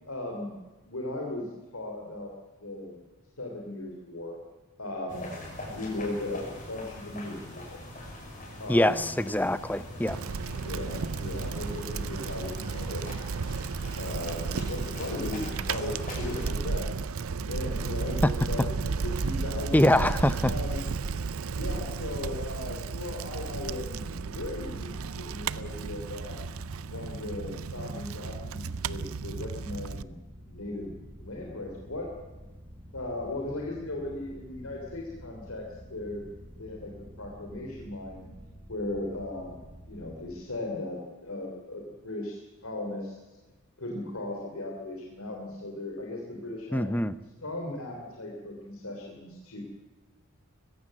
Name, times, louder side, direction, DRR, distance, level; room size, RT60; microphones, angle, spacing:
voice 1, 0.1-0.6 0.8-2.3 2.6-2.9 3.4-4.4 4.8-5.3 5.6-7.8 8.6-9.1 10.5-13.0 14.0-16.9 17.4-20.1 20.4-20.8 21.5-26.4 26.9-30.2 30.5-32.1 32.9-35.6 35.9-36.2 36.6-38.3 38.7-39.6 39.9-43.1 43.8-46.9 47.4-49.6, left 2 dB, 80° left, 0 dB, 3.3 m, -37 dB
sound 1, 5.1-16.5, left 1 dB, 35° left, 6.1 m, -42 dB
voice 2, 8.7-10.2 18.2-18.3 19.7-20.5 46.7-47.1, left 1 dB, 10° left, 14 dB, 0.6 m, -24 dB
Bicycle, 10.1-30.0, right 5 dB, 80° right, 0.6 m, -33 dB
sound 2, 23.4-40.4, equal, 30° right, 4.8 m, -49 dB
22.0 x 15.5 x 7.6 m, 1.2 s
head